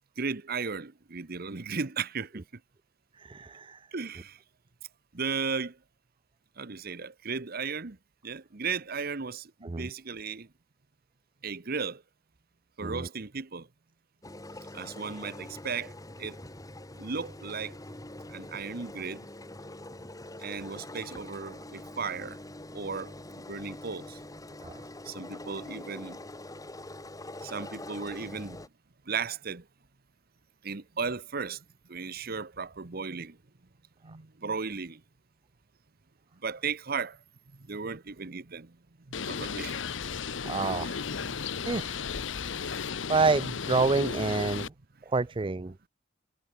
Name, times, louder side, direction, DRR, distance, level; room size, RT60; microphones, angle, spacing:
voice 1, 0.2-2.4 3.9-4.4 5.1-5.8 6.6-8.0 8.2-10.5 11.4-12.0 12.8-13.7 14.7-15.9 16.2-16.4 17.0-17.8 18.3-19.2 20.4-22.4 22.7-24.2 25.0-26.2 27.4-28.6 29.1-29.7 30.6-33.4 34.0-35.0 36.4-37.2 37.5-38.8 39.2-39.8 41.2-41.4, right 5 dB, 55° right, 1.1 m, -35 dB
voice 2, 3.2-3.9 9.6-9.9 12.8-13.1 24.6-24.8 40.4-41.0 41.7-42.0 43.1-44.7 45.1-45.7, right 3 dB, 25° right, 0.5 m, -28 dB
sound 1, 14.2-28.7, left 1 dB, 20° left, 2.3 m, -44 dB
Bird, 39.1-44.7, left 6 dB, 85° left, 0.9 m, -34 dB
head